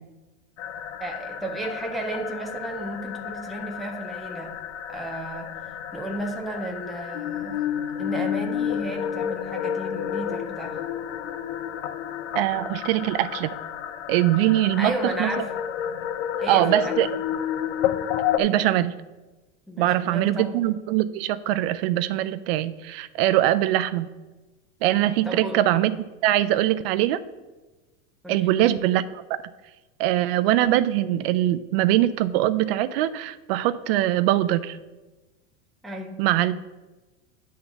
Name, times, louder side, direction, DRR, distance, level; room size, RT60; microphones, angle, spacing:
sound 1, 0.6-18.4, left 10 dB, 60° left, 0.6 m, -31 dB
voice 1, 1.0-4.6 4.9-7.6 8.0-10.8 14.8-15.5 16.4-17.0 19.7-20.7 25.2-25.7 28.2-28.6 35.8-36.2, right 1 dB, ahead, 1 dB, 0.4 m, -33 dB
voice 2, 12.3-13.5 14.1-15.3 16.5-17.1 18.4-18.9 19.8-24.1 24.8-25.9 26.2-27.2 28.3-29.4 30.0-34.8 36.2-36.5, right 13 dB, 55° right, 14 dB, 0.5 m, -22 dB
9.7 x 3.8 x 6.9 m, 1.1 s
supercardioid pair, 160°, 36 cm